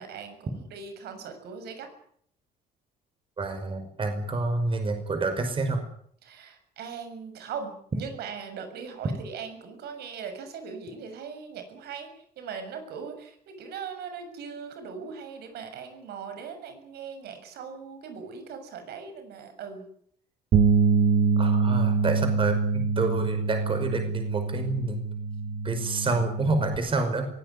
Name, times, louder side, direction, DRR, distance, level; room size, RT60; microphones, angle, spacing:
voice 1, 0.0-1.9 6.2-19.9, right 6 dB, 75° right, 8 dB, 7.0 m, -40 dB
voice 2, 3.4-5.8 21.4-25.0 25.6-27.3, right 3 dB, 30° right, 7 dB, 5.5 m, -28 dB
sound 1, 20.5-26.8, right 5 dB, 55° right, 1.7 m, -25 dB
23.0 x 18.0 x 9.7 m, 0.65 s
cardioid pair, 110°, 17 cm